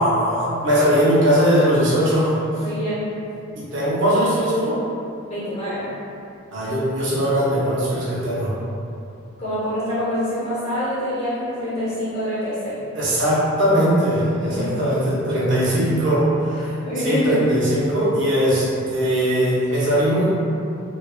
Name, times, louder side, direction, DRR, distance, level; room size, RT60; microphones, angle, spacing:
voice 1, 0.0-2.4 3.6-4.8 6.5-8.6 12.9-16.7 17.0-20.3, equal, 55° right, -8 dB, 0.7 m, -20 dB
voice 2, 2.6-3.0 5.3-5.9 9.4-12.8 14.5-14.9 16.6-17.3, left 1 dB, 30° left, -11 dB, 1.0 m, -26 dB
3.2 x 2.3 x 2.4 m, 2.6 s
head